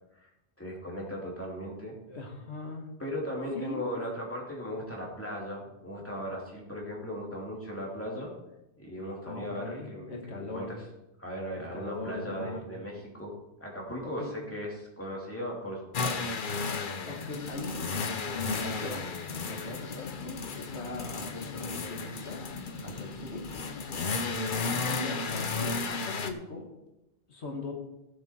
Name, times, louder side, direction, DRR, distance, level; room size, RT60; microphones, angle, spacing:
voice 1, 0.6-1.9 3.0-8.3 8.7-10.8 11.2-13.3 13.6-16.3 22.8-23.1, equal, 10° left, -2 dB, 2.8 m, -37 dB
voice 2, 2.1-3.0 3.5-3.8 9.3-10.7 11.5-12.7 14.0-14.3 17.1-17.9 18.2-22.4 22.8-23.5 24.1-26.7 27.3-27.7, left 2 dB, 90° left, 1 dB, 2.1 m, -40 dB
sound 1, 15.9-26.3, left 4 dB, 50° left, 1.0 m, -34 dB
16.0 x 7.7 x 4.5 m, 0.92 s
omnidirectional pair, 1.1 m